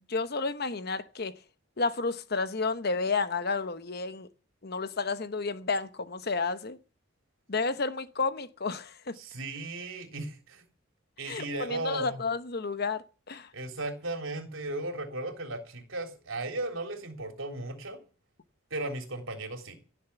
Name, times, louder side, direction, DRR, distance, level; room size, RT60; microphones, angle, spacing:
voice 1, 0.1-1.3 1.8-4.3 4.6-6.8 7.5-9.1 11.3-13.5, left 4 dB, 50° left, 1.0 m, -31 dB
voice 2, 9.2-10.6 11.2-12.2 13.5-18.0 18.7-19.8, right 2 dB, 75° right, 3.5 m, -36 dB
16.5 x 7.3 x 8.1 m
head